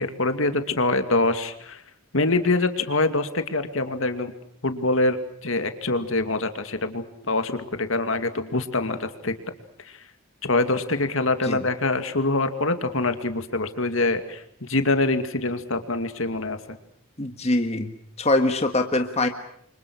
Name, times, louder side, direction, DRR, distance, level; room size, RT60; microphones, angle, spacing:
voice 1, 0.0-1.8 2.1-4.3 4.6-5.2 5.4-9.3 9.9-10.0 10.4-16.6, left 2 dB, 65° left, 9 dB, 2.4 m, -24 dB
voice 2, 17.2-17.9 18.2-19.3, left 2 dB, 30° left, 6 dB, 1.6 m, -23 dB
29.5 x 25.5 x 6.3 m, 0.69 s
head